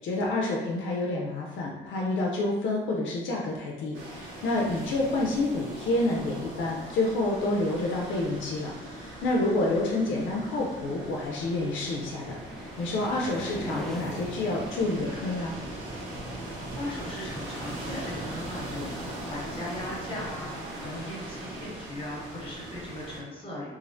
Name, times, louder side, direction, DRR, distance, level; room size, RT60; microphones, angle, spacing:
voice 1, 0.0-15.6, left 2 dB, 75° left, -2 dB, 0.4 m, -28 dB
sound 1, 3.9-23.2, right 1 dB, 85° right, 0.7 m, -40 dB
sound 2, 11.5-18.0, left 1 dB, ahead, 0.5 m, -43 dB
voice 2, 16.7-20.5 20.8-23.7, left 1 dB, 25° left, -4 dB, 1.0 m, -38 dB
2.4 x 2.0 x 2.5 m, 1.2 s
cardioid pair, 90°, 20 cm